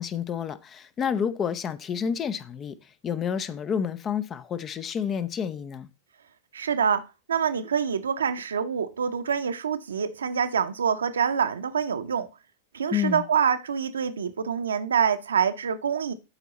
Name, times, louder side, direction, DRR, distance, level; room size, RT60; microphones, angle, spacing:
voice 1, 0.0-2.8 3.0-5.9 12.9-13.2, left 7 dB, 25° left, 0.6 m, -29 dB
voice 2, 6.5-7.0 7.3-12.3 12.7-16.1, right 7 dB, 70° right, 0.8 m, -26 dB
12.0 x 4.5 x 4.1 m
figure-of-eight pair, 90°, 0 cm